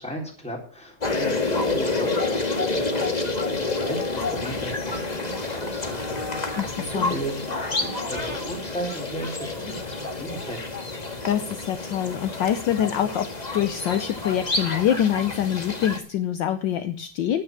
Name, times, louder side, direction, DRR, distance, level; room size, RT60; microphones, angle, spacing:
voice 1, 0.0-10.7, right 1 dB, 5° left, -1 dB, 3.7 m, -36 dB
sound 1, 1.0-16.0, left 3 dB, 20° left, 1.5 m, -29 dB
voice 2, 6.6-7.1 11.2-17.4, left 10 dB, 70° left, 9 dB, 1.4 m, -25 dB
10.0 x 9.6 x 6.3 m, 0.43 s
omnidirectional pair, 2.3 m